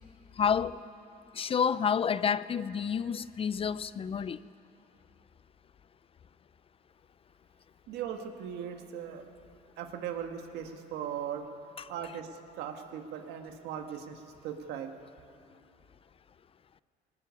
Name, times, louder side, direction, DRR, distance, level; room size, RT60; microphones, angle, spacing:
voice 1, 0.4-0.8 1.4-4.4 11.8-11.9, left 7 dB, 35° left, 0.5 m, -29 dB
voice 2, 7.9-9.3 9.8-11.4 11.9-14.9, right 8 dB, 85° right, 1.8 m, -39 dB
20.0 x 18.5 x 9.7 m
cardioid pair, 110°, 17 cm